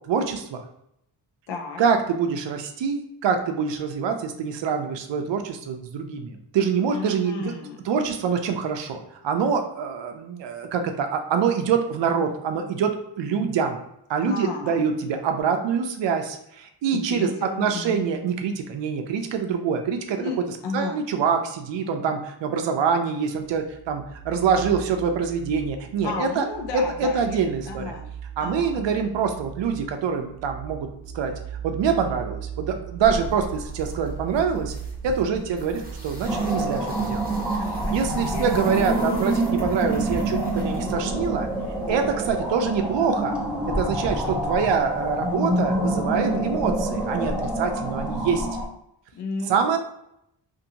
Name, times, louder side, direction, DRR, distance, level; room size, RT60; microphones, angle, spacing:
voice 1, 0.1-0.6 1.8-7.6 7.8-13.8 14.1-20.2 20.7-26.5 26.7-27.9 28.4-30.9 31.1-31.3 31.6-34.7 35.0-37.6 37.9-41.5 41.9-43.3 43.7-48.5 49.5-49.8, right 6 dB, 80° right, 5 dB, 0.5 m, -25 dB
voice 2, 1.5-1.8 6.9-7.8 14.2-14.9 17.1-17.3 17.5-18.0 20.2-20.4 20.6-21.0 26.0-27.4 27.6-28.1 28.4-29.1 37.4-39.1 49.1-49.8, left 4 dB, 70° left, 1 dB, 0.6 m, -33 dB
sound 1, 23.4-37.3, right 8 dB, 90° left, 1.1 m, -39 dB
sound 2, 33.0-42.4, equal, 20° right, 0.8 m, -37 dB
sound 3, 36.3-48.7, right 1 dB, ahead, 0.5 m, -27 dB
2.6 x 2.6 x 2.8 m, 0.78 s
wide cardioid pair, 105°, 44 cm